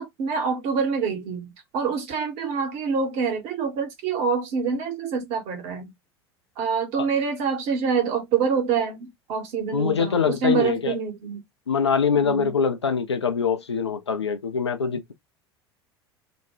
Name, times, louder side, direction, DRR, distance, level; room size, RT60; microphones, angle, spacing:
voice 1, 0.0-5.9 6.6-11.4 12.2-12.5, right 5 dB, 50° right, 1.0 m, -26 dB
voice 2, 9.7-10.9 11.7-15.1, left 6 dB, 80° left, 0.5 m, -23 dB
2.5 x 2.1 x 3.0 m
figure-of-eight pair, 75°, 14 cm